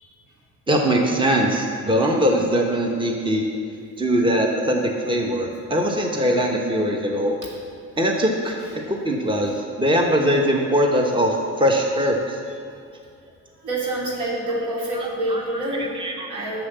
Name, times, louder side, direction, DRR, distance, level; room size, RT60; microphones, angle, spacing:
voice 1, 0.7-3.4 4.0-7.4 8.0-8.6 8.9-12.4 14.9-15.4 15.8-16.3, equal, 15° right, 1 dB, 1.2 m, -21 dB
voice 2, 13.6-15.9 16.3-16.7, right 1 dB, 80° right, -4 dB, 3.2 m, -26 dB
9.6 x 7.2 x 6.8 m, 2.3 s
cardioid pair, 90°, 30 cm